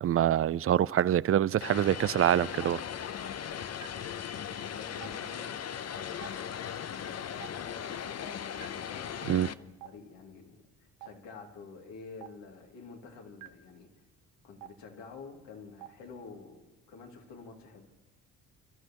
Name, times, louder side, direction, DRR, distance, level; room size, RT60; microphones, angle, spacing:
voice 1, 0.0-2.8 9.3-9.5, right 11 dB, 35° right, 0.4 m, -25 dB
Vehicle, 1.6-9.5, left 8 dB, 35° left, 0.6 m, -38 dB
Stream, 2.6-2.7 3.8-3.9 5.0-5.1 6.2-6.3 7.4-7.5 8.6-8.7 9.8-9.9 11.0-11.1 12.2-12.3 13.4-13.5 14.6-14.7 15.8-15.9, right 14 dB, 75° right, 1.0 m, -46 dB
voice 2, 4.4-13.9 14.4-17.9, left 4 dB, 70° left, 2.6 m, -49 dB
29.0 x 13.0 x 3.0 m
hypercardioid pair, 50°, 44 cm